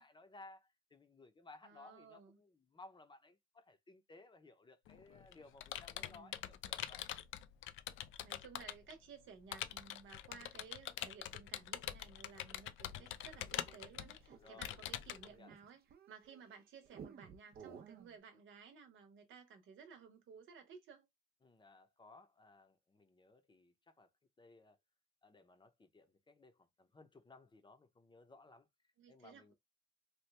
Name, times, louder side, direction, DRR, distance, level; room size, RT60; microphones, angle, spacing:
voice 1, 0.0-7.1 12.9-13.2 14.4-15.5 21.4-24.1 24.4-24.8 25.2-28.7 29.1-29.5, left 3 dB, 25° left, 0.7 m, -60 dB
voice 2, 1.6-2.4 5.9-6.4 8.2-21.1 29.0-29.5, right 6 dB, 75° right, 0.9 m, -57 dB
Computer keyboard, 4.9-8.9 9.5-15.3, left 12 dB, 80° left, 0.4 m, -44 dB
sound 1, 13.4-16.4 16.9-18.2, right 7 dB, 50° right, 0.6 m, -56 dB
2.9 x 2.2 x 3.3 m
cardioid pair, 90°, 20 cm